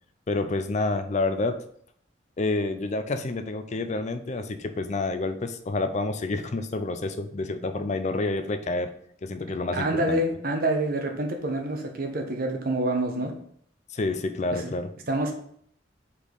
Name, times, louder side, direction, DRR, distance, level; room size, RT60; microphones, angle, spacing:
voice 1, 0.3-1.6 2.4-8.9 9.2-10.2 13.9-14.9, left 2 dB, 40° left, 9 dB, 0.5 m, -28 dB
voice 2, 9.7-13.3 14.5-14.7 15.1-15.3, right 1 dB, 55° right, 3 dB, 1.1 m, -27 dB
5.0 x 4.3 x 5.3 m, 0.65 s
head